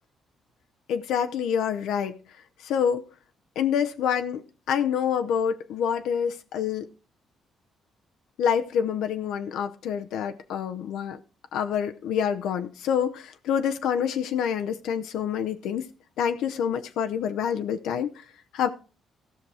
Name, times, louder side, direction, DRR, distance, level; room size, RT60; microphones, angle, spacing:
voice 1, 0.9-2.2 2.6-3.0 3.6-6.9 8.4-11.2 11.5-15.9 16.2-18.2 18.5-18.7, left 8 dB, 85° left, 0.7 m, -27 dB
15.0 x 6.0 x 4.8 m
cardioid pair, 90°, 0 cm